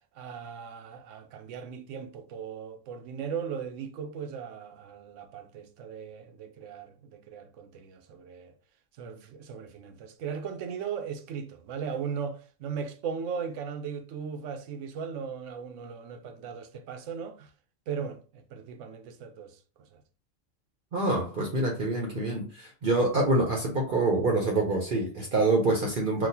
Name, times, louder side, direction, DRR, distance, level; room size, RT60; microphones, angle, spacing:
voice 1, 0.1-8.5 9.0-17.5 17.9-19.6 19.9-20.0, right 6 dB, 80° right, 0.9 m, -38 dB
voice 2, 20.9-26.3, right 2 dB, 50° right, 0.8 m, -26 dB
4.0 x 2.4 x 2.7 m
omnidirectional pair, 1.2 m